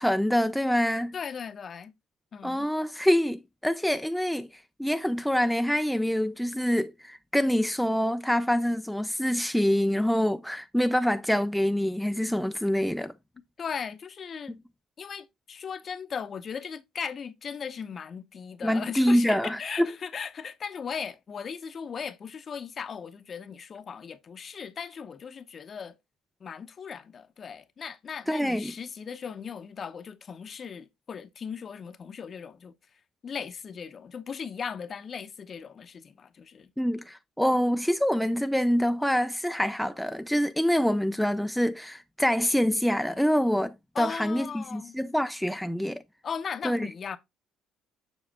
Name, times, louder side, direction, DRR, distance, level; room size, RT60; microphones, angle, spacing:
voice 1, 0.0-1.1 2.4-4.5 4.8-13.1 14.5-14.6 18.6-19.9 28.3-28.7 36.8-46.0 46.6-46.8, equal, ahead, 0.3 m, -26 dB
voice 2, 1.1-1.9 2.3-2.7 13.6-14.6 15.0-25.9 26.4-32.7 33.2-36.7 43.9-45.0 46.2-47.2, left 6 dB, 40° left, 0.7 m, -37 dB
7.2 x 6.2 x 2.2 m
cardioid pair, 110°, 0 cm